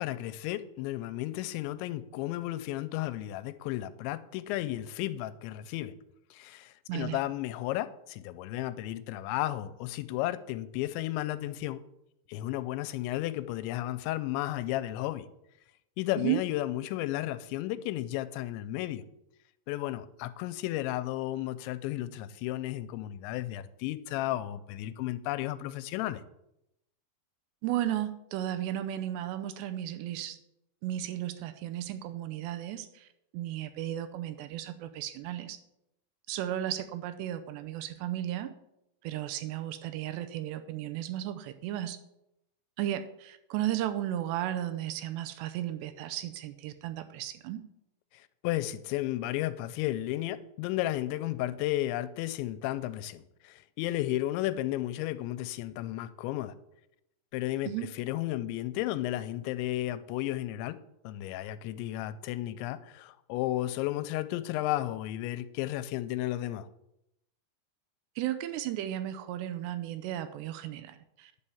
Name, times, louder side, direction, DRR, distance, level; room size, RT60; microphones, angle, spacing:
voice 1, 0.0-5.9 6.3-11.8 12.3-15.3 16.0-19.0 19.7-26.2 48.4-56.5 57.3-57.7 58.0-60.8 61.0-66.7, left 15 dB, 90° left, 2.9 m, -33 dB
voice 2, 6.9-7.2 16.2-16.4 27.6-30.4 30.8-35.6 36.3-38.5 39.0-42.0 42.8-47.6 57.6-57.9 68.2-71.3, right 12 dB, 80° right, 2.6 m, -34 dB
10.0 x 5.5 x 7.0 m
omnidirectional pair, 5.1 m